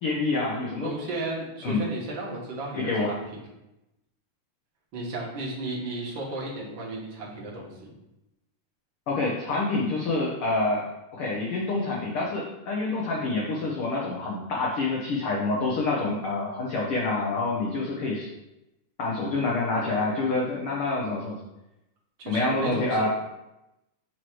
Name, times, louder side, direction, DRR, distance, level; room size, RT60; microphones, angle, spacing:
voice 1, 0.0-0.9 1.6-1.9 2.7-3.1 9.1-18.3 19.0-21.4 22.3-23.1, left 3 dB, 80° left, -3 dB, 1.2 m, -27 dB
voice 2, 0.8-3.4 4.9-7.9 22.2-23.1, right 2 dB, 45° right, -4 dB, 1.7 m, -34 dB
8.5 x 3.1 x 4.5 m, 0.93 s
omnidirectional pair, 3.6 m